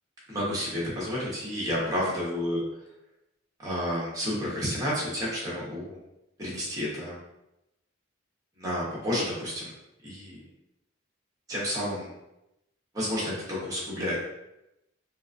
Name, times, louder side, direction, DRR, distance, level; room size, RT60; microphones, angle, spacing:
voice 1, 0.3-2.6 3.6-6.0 6.4-7.2 8.6-9.7 10.0-10.4 11.5-12.1 12.9-14.2, equal, 20° right, -7 dB, 1.1 m, -30 dB
3.8 x 2.5 x 2.6 m, 0.88 s
head